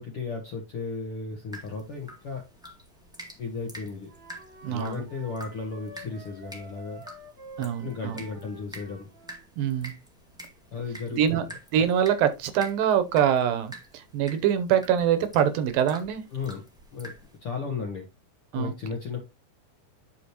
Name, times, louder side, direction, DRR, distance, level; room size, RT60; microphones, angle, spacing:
voice 1, 0.0-2.4 3.4-4.1 4.7-7.0 7.8-9.1 10.7-11.4 16.3-16.6 16.9-17.1 17.4-18.0 18.5-19.3, left 4 dB, 60° left, 1.4 m, -34 dB
sound 1, 1.5-17.4, right 1 dB, 5° right, 0.8 m, -47 dB
Wind instrument woodwind instrument, 4.1-9.4, right 1 dB, 40° right, 2.0 m, -48 dB
voice 2, 4.6-5.0 7.6-8.2 9.6-9.9 11.1-11.4 11.7-16.2 18.5-18.7, right 9 dB, 75° right, 2.4 m, -24 dB
9.7 x 6.4 x 2.9 m
omnidirectional pair, 4.4 m